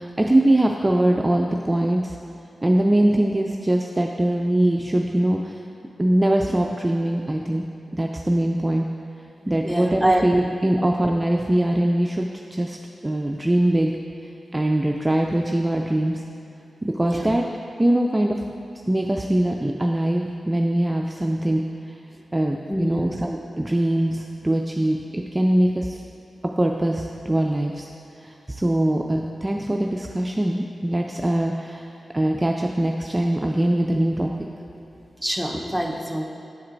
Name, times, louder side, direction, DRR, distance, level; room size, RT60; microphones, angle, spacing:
voice 1, 0.0-2.2 2.6-5.6 6.0-7.6 7.9-8.9 9.5-12.8 13.0-13.9 14.5-16.2 16.8-17.5 17.8-18.4 18.9-21.6 21.9-22.0 22.3-26.0 26.6-27.9 28.2-31.9 32.1-34.3, right 1 dB, 25° right, 1 dB, 0.4 m, -22 dB
voice 2, 9.6-10.3 10.7-10.8 17.0-17.3 22.7-23.1 35.2-36.2, right 1 dB, ahead, 1 dB, 0.8 m, -25 dB
10.0 x 4.2 x 2.6 m, 2.8 s
supercardioid pair, 40°, 0 cm